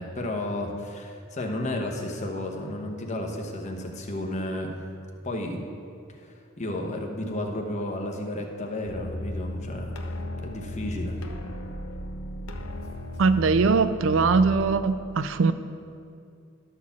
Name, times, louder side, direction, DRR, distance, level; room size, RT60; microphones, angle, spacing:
voice 1, 0.0-4.7 5.2-5.7 6.2-10.1 10.4-11.2, left 1 dB, 35° left, 2 dB, 1.0 m, -32 dB
sound 1, 8.8-14.6, left 1 dB, 80° left, 0.8 m, -35 dB
voice 2, 13.2-15.5, right 4 dB, 65° right, 12 dB, 0.4 m, -21 dB
12.0 x 4.3 x 7.1 m, 2.4 s
head